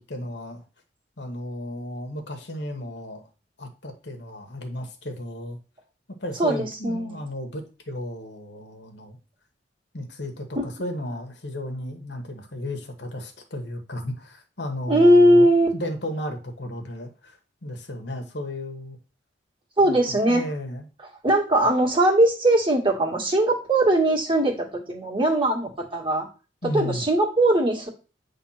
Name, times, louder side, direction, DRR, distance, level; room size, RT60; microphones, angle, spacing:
voice 1, 0.1-0.6 1.2-3.2 3.6-5.6 6.2-9.2 9.9-19.0 19.8-20.8 26.6-27.0, left 1 dB, 65° left, 4 dB, 1.6 m, -34 dB
voice 2, 6.4-7.2 10.6-10.7 14.9-15.7 19.8-20.4 21.2-26.3 26.6-27.9, right 1 dB, 30° right, 0 dB, 2.1 m, -20 dB
9.1 x 3.7 x 5.8 m, 0.33 s
head